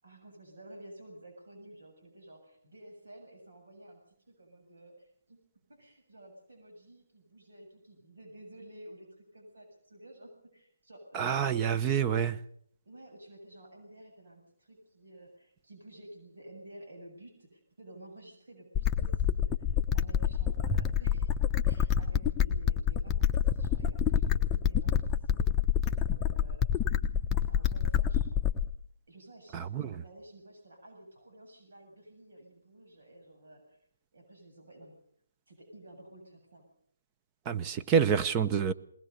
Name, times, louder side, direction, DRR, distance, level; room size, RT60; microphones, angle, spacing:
voice 1, 0.0-5.4 5.7-11.8 12.9-21.3 21.6-26.6 27.3-28.4 29.1-33.8 34.1-35.0 35.5-36.7, right 1 dB, 70° right, 7.4 m, -52 dB
voice 2, 11.1-12.4 29.5-30.0 37.5-38.7, right 7 dB, 20° right, 0.9 m, -27 dB
sound 1, 18.7-28.7, left 9 dB, 10° left, 0.9 m, -27 dB
21.5 x 19.5 x 6.8 m
figure-of-eight pair, 155°, 0 cm